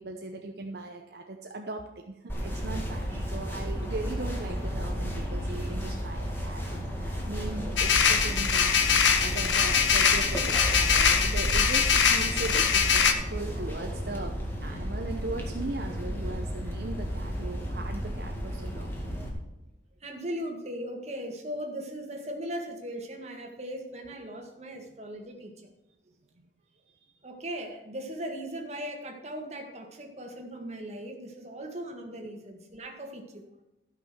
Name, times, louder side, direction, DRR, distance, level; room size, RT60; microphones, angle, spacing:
voice 1, 0.0-13.0 13.3-14.3 14.6-18.9, right 2 dB, 55° right, 2 dB, 0.8 m, -39 dB
sound 1, 2.3-19.3, equal, 10° left, 2.0 m, -33 dB
sound 2, 7.8-13.1, left 7 dB, 90° left, 1.1 m, -23 dB
voice 2, 20.0-25.7 27.2-33.4, equal, 35° right, 3 dB, 1.8 m, -38 dB
13.5 x 6.1 x 6.1 m, 0.96 s
head